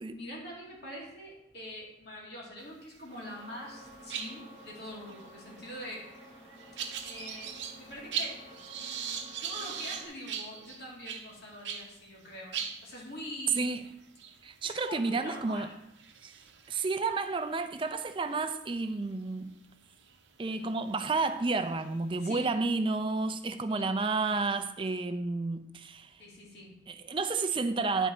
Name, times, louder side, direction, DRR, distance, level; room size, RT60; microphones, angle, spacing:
voice 1, 0.1-6.0 7.0-8.5 9.4-13.8 14.6-15.7 22.2-22.5 23.7-23.9 24.9-25.0 26.2-26.7, left 1 dB, 65° left, 2.4 m, -44 dB
sound 1, 3.0-3.5 3.7-11.9 12.2-12.3 12.5-18.3 18.9-19.2 20.0-20.1 20.7-22.5, right 7 dB, 80° right, 0.7 m, -41 dB
sound 2, 3.1-10.1, equal, 30° left, 1.2 m, -52 dB
voice 2, 14.4-15.7 16.2-16.3 16.7-19.5 20.4-26.1 26.9-28.1, right 3 dB, 30° right, 0.4 m, -31 dB
9.9 x 4.6 x 4.0 m
head